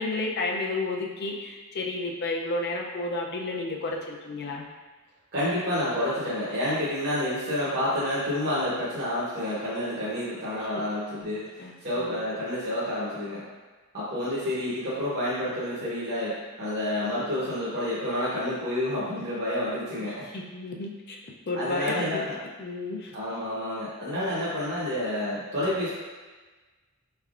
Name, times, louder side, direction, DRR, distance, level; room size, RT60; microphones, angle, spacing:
voice 1, 0.0-4.6 10.6-10.7 11.2-12.3 20.0-21.2 21.5-22.2 22.6-23.1, left 2 dB, 50° left, 0 dB, 0.5 m, -32 dB
voice 2, 5.3-11.5 11.8-13.4 13.9-20.3 21.5-22.4 23.1-25.9, left 1 dB, 50° right, -9 dB, 0.9 m, -29 dB
4.4 x 3.3 x 2.5 m, 1.3 s
head